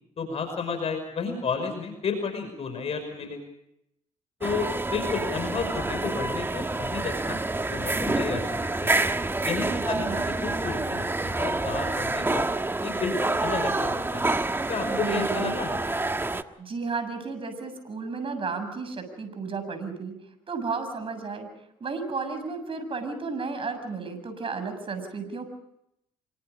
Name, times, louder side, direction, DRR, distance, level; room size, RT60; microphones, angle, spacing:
voice 1, 0.2-3.4 4.4-7.4 7.7-9.0 9.4-10.1 10.4-12.5 12.8-14.3 14.7-15.8, left 5 dB, 55° left, 7 dB, 5.6 m, -32 dB
sound 1, 4.4-16.4, right 2 dB, 15° right, 1.4 m, -28 dB
voice 2, 9.9-10.4 14.8-15.5 16.6-20.1 20.5-21.5 21.8-25.4, right 4 dB, 45° right, 8 dB, 7.3 m, -33 dB
27.5 x 24.5 x 5.1 m, 0.79 s
supercardioid pair, 65°, 13 cm